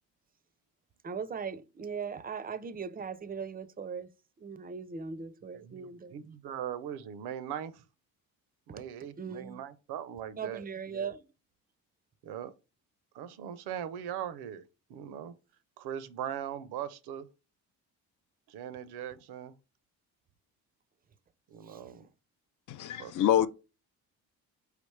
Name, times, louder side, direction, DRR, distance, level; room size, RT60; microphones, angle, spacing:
voice 1, 1.0-4.1 4.4-6.2 8.8-8.9 9.2-9.6 10.4-11.2 21.6-22.1, right 6 dB, 25° right, 0.4 m, -39 dB
voice 2, 5.5-7.8 8.7-10.6 10.9-11.1 12.2-12.5 13.1-14.6 14.9-15.3 15.8-17.3 18.5-19.5 21.5-22.1 22.9-23.5, right 9 dB, 75° right, 0.6 m, -40 dB
voice 3, 22.7-23.5, left 11 dB, 55° left, 0.4 m, -26 dB
4.9 x 3.3 x 3.2 m
supercardioid pair, 70°, 39 cm